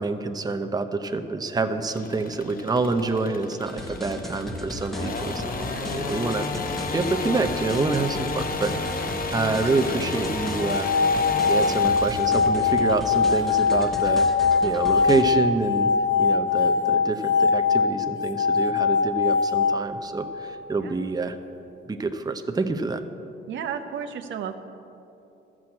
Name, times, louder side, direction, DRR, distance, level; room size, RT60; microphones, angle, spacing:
voice 1, 0.0-6.7 6.9-8.7 9.3-10.9 11.5-15.9 16.2-21.4 21.9-23.0, right 3 dB, 20° right, 7 dB, 0.7 m, -27 dB
sound 1, 1.9-14.2, left 3 dB, 45° left, 1.0 m, -32 dB
sound 2, 3.6-15.2, equal, ahead, 1.1 m, -37 dB
voice 2, 9.5-10.1 20.8-21.0 23.5-24.5, right 8 dB, 70° right, 7 dB, 0.9 m, -34 dB
sound 3, 10.5-20.7, left 5 dB, 70° left, 1.0 m, -22 dB
12.5 x 6.2 x 8.6 m, 2.9 s
cardioid pair, 90°, 20 cm